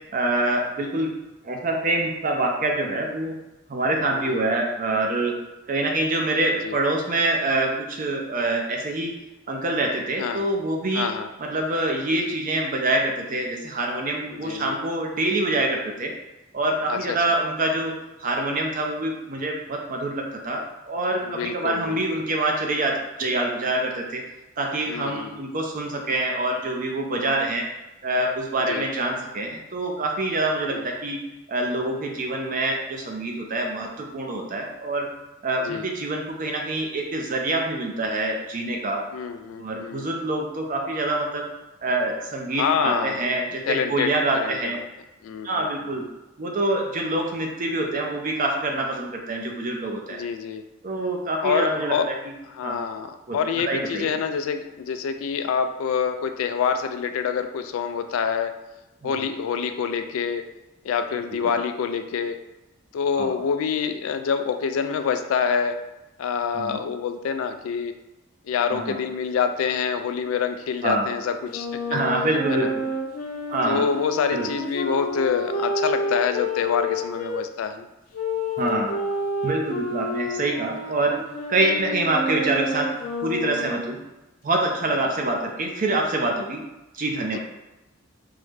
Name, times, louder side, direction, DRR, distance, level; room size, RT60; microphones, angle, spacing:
voice 1, 0.1-1.1 1.4-3.3 3.7-5.3 5.7-9.1 9.5-11.1 11.4-16.1 16.5-17.9 18.2-24.2 24.6-27.7 28.0-31.2 31.5-35.1 35.4-39.0 39.6-41.4 41.8-44.8 45.4-46.0 46.4-50.2 50.8-51.9 52.6-52.8 53.3-53.4 53.7-54.1 59.0-59.1 63.2-63.3 66.5-66.8 68.7-69.0 70.8-71.1 71.9-72.7 73.5-73.8 74.3-74.5 78.6-79.0 79.4-81.1 81.5-82.9 83.2-84.0 84.4-86.6 86.9-87.4, right 2 dB, 40° right, 1 dB, 0.5 m, -25 dB
voice 2, 4.1-4.4 6.6-6.8 10.2-10.5 10.9-11.3 14.3-14.8 16.9-17.2 21.2-22.4 24.9-25.4 28.7-28.9 30.7-30.9 35.6-35.9 39.1-40.1 42.6-43.3 43.7-44.9 45.2-46.0 50.1-50.6 51.4-52.1 52.4-58.5 59.0-60.5 60.8-62.4 62.9-65.8 66.2-67.9 68.4-72.0 72.5-72.7 73.6-77.9 81.7-82.0 85.0-85.1 87.3-87.4, left 6 dB, 80° left, 9 dB, 0.3 m, -26 dB
Wind instrument woodwind instrument, 71.5-77.3 78.1-83.9, left 1 dB, 45° left, 0.6 m, -29 dB
3.6 x 2.1 x 3.2 m, 1.0 s
head